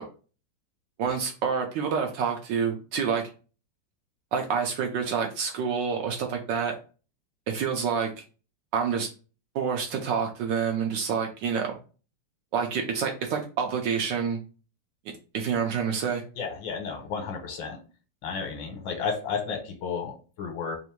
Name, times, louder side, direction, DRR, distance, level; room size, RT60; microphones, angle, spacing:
voice 1, 1.0-3.2 4.3-6.7 7.5-8.1 8.7-9.1 9.5-11.8 12.5-14.4 15.3-16.2, right 6 dB, 70° right, 3 dB, 1.1 m, -27 dB
voice 2, 16.4-17.8 18.2-20.8, left 5 dB, 70° left, 3 dB, 1.5 m, -32 dB
3.5 x 2.6 x 4.4 m, 0.36 s
omnidirectional pair, 2.3 m